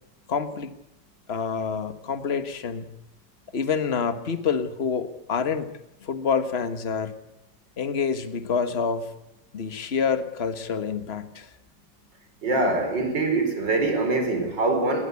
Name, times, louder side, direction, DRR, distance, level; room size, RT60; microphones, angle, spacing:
voice 1, 0.3-0.7 1.3-2.9 3.5-5.7 6.0-7.1 7.8-9.1 9.5-11.5, left 6 dB, 35° left, 10 dB, 1.6 m, -27 dB
voice 2, 12.4-15.1, right 2 dB, 90° right, 5 dB, 5.2 m, -24 dB
20.5 x 19.5 x 8.3 m, 0.84 s
omnidirectional pair, 1.9 m